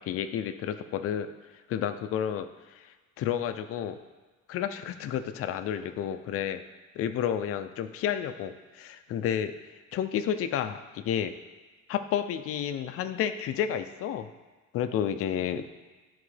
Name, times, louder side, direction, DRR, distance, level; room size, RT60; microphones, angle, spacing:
voice 1, 0.0-1.3 1.7-4.0 4.5-6.6 7.0-9.5 9.9-11.3 11.9-14.3 14.7-15.7, left 9 dB, 45° left, 8 dB, 0.4 m, -31 dB
11.0 x 3.9 x 3.2 m, 1.3 s
cardioid pair, 175°, 32 cm